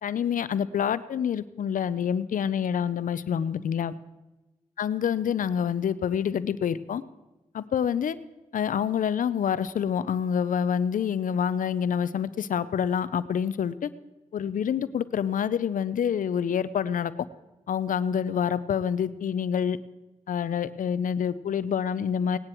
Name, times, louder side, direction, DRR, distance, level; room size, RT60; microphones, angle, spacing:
voice 1, 0.0-3.9 4.8-7.0 7.5-8.2 8.5-13.9 14.3-17.1 17.7-19.8 20.3-22.4, left 8 dB, 85° left, 16 dB, 0.5 m, -27 dB
18.0 x 9.9 x 4.5 m, 1.1 s
cardioid pair, 40°, 13 cm